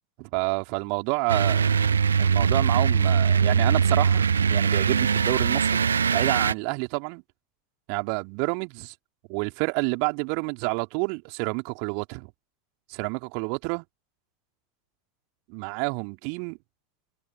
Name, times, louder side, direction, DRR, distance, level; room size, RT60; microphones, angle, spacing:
voice 1, 0.2-1.8 2.2-5.8 6.1-7.2 7.9-8.9 9.3-12.3 12.9-13.8 15.5-16.6, right 40 dB or more, 50° right, 3.0 m, -29 dB
sound 1, 1.3-6.5, right 6 dB, 75° right, 0.5 m, -21 dB
figure-of-eight pair, 80°, 0 cm